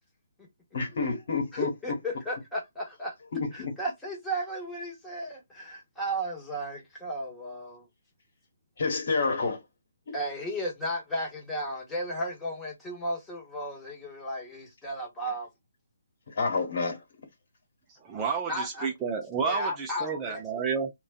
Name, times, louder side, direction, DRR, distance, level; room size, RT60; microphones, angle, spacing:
voice 1, 0.7-1.7 3.3-3.7 8.8-9.6 10.1-10.2 16.4-17.0, left 4 dB, 55° left, 1.2 m, -28 dB
voice 2, 1.5-3.1 3.5-7.9 10.1-15.5 18.5-18.9 19.4-20.4, equal, 5° left, 1.0 m, -34 dB
voice 3, 18.0-20.9, right 6 dB, 15° right, 0.4 m, -30 dB
2.5 x 2.3 x 2.3 m
figure-of-eight pair, 145°, 0 cm